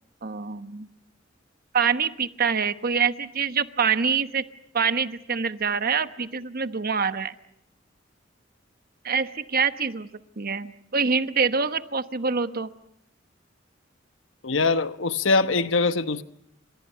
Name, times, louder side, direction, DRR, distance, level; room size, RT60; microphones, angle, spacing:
voice 1, 0.2-0.9 1.7-4.4 4.7-7.3 9.0-10.1 10.4-12.7, right 6 dB, 50° right, 1.1 m, -25 dB
voice 2, 14.4-16.2, left 3 dB, 85° left, 1.1 m, -23 dB
30.0 x 26.5 x 5.7 m
head